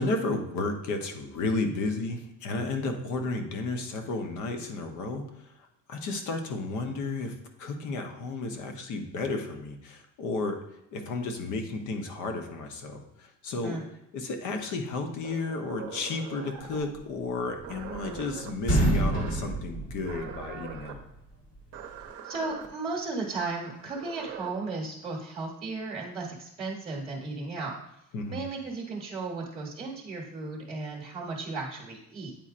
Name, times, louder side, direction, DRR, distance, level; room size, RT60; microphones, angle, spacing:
voice 1, 0.0-10.6 10.9-13.8 14.1-21.0 28.1-28.4, left 3 dB, 65° left, 5 dB, 0.9 m, -33 dB
sound 1, 15.2-16.9 17.6-18.5 19.1-19.5 20.0-21.0 21.7-22.7 23.7-24.5, right 7 dB, 50° right, 0.7 m, -42 dB
sound 2, 17.4-18.3 18.6-20.7, right 1 dB, 45° left, 1.5 m, -27 dB
voice 2, 22.2-27.8 28.3-32.3, right 3 dB, 20° right, -4 dB, 1.0 m, -35 dB
8.9 x 4.2 x 2.5 m, 0.82 s
cardioid pair, 165°, 32 cm